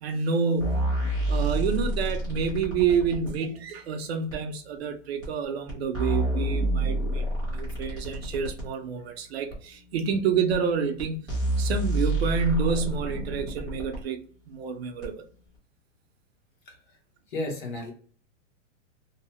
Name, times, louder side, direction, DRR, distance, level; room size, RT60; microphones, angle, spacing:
voice 1, 0.0-7.2 7.5-11.3 11.6-15.1, right 6 dB, 55° right, 0.5 m, -28 dB
sound 1, 0.6-3.3 4.3-4.4 5.2-5.3 5.7-8.7 9.5-9.6 10.5-10.6 11.0-11.1 11.3-14.0 15.0-15.1, right 1 dB, 10° left, 0.8 m, -28 dB
voice 2, 17.3-17.9, left 2 dB, 40° left, 0.9 m, -32 dB
2.8 x 2.0 x 3.0 m
supercardioid pair, 165°, 38 cm